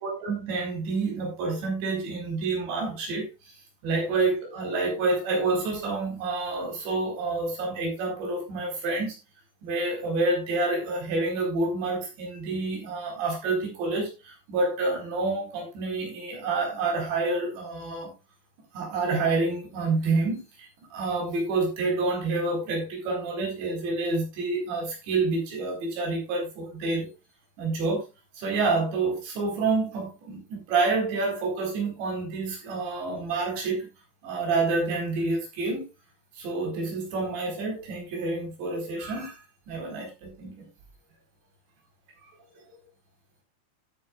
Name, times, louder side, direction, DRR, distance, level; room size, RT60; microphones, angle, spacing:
voice 1, 0.0-3.3 3.8-9.2 9.6-18.1 18.7-27.1 27.6-28.1 28.4-33.9 34.2-35.8 36.4-39.4 39.7-40.7 42.7-42.8, right 3 dB, 90° right, 6.7 m, -28 dB
14.5 x 9.2 x 2.5 m
omnidirectional pair, 4.9 m